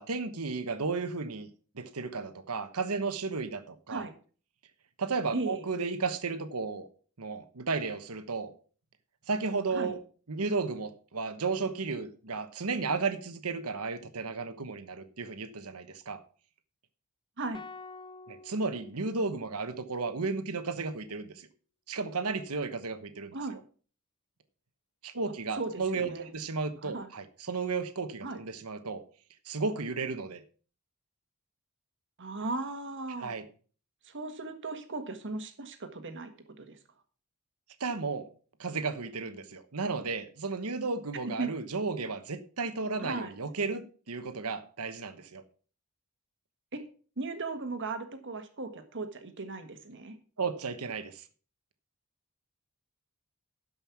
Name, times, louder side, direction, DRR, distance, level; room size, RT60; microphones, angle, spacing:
voice 1, 0.0-1.5 1.7-4.0 5.0-6.9 7.2-8.5 9.3-10.0 10.3-16.2 18.3-21.5 21.9-23.3 25.0-29.0 29.5-30.4 33.2-33.4 37.8-38.3 38.6-45.4 50.4-51.2, right 4 dB, 75° right, 1.1 m, -33 dB
voice 2, 5.3-5.6 9.7-10.0 17.4-17.6 23.3-23.6 25.5-26.3 26.8-27.1 28.2-28.4 32.2-33.3 34.0-36.3 36.6-36.8 41.4-41.5 43.0-43.3 46.7-46.8 47.2-50.1, right 3 dB, 55° right, 1.5 m, -37 dB
sound 1, 17.5-19.9, left 3 dB, 20° left, 0.4 m, -49 dB
12.5 x 5.5 x 6.0 m
head